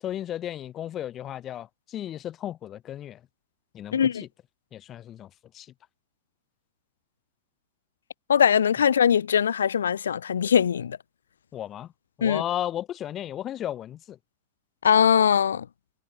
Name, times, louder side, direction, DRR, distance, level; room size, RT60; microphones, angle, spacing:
voice 1, 0.0-3.2 3.7-4.3 4.7-5.7 11.5-11.9 12.2-14.2, left 11 dB, 30° left, 7.2 m, -34 dB
voice 2, 3.9-4.2 8.3-11.0 12.2-12.4 14.8-15.6, left 8 dB, 65° left, 1.2 m, -21 dB
figure-of-eight pair, 90°, 0 cm